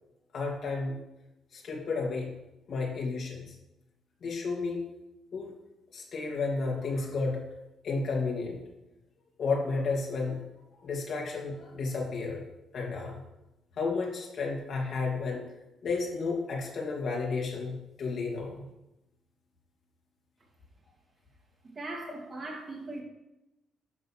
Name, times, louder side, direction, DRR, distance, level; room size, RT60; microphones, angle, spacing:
voice 1, 0.3-1.0 1.5-2.3 2.7-3.5 4.2-4.9 5.3-5.5 5.9-7.5 7.8-8.6 9.4-10.4 10.8-12.4 12.7-13.2 13.8-15.4 15.8-18.6, left 4 dB, 60° left, -1 dB, 2.6 m, -32 dB
voice 2, 21.6-23.0, right 2 dB, 30° right, -1 dB, 2.8 m, -39 dB
11.0 x 4.0 x 7.5 m, 0.95 s
cardioid pair, 90°, 0 cm